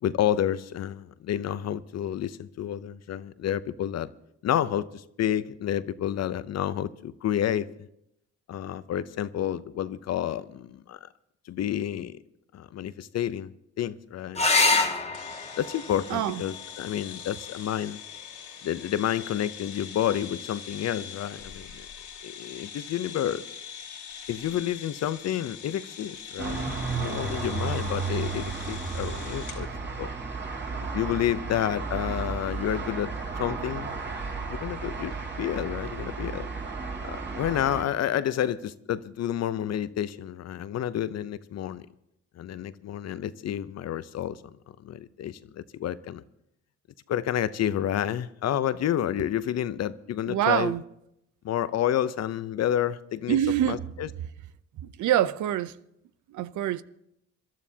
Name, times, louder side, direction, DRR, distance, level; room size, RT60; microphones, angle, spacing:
voice 1, 0.0-4.1 4.4-7.7 8.5-11.1 11.5-12.2 12.5-13.5 13.8-14.5 15.6-18.0 18.6-21.9 22.2-23.4 24.3-29.7 30.0-30.1 30.9-33.9 34.5-36.5 37.0-41.9 42.4-44.4 44.8-46.2 47.1-50.7 51.4-53.4 53.6-54.1, left 11 dB, 60° left, 0.7 m, -30 dB
sound 1, 14.3-19.4 21.3-21.9 25.4-25.5 25.8-25.9, left 3 dB, 20° left, 1.5 m, -29 dB
sound 2, 15.1-29.6, left 8 dB, 90° left, 2.6 m, -43 dB
voice 2, 16.1-16.4 50.3-50.8 53.3-53.8 54.8-55.7 56.3-56.8, right 11 dB, 75° right, 0.7 m, -25 dB
sound 3, 26.4-37.8, right 4 dB, 35° right, 3.4 m, -33 dB
26.5 x 12.0 x 2.8 m
cardioid pair, 90°, 30 cm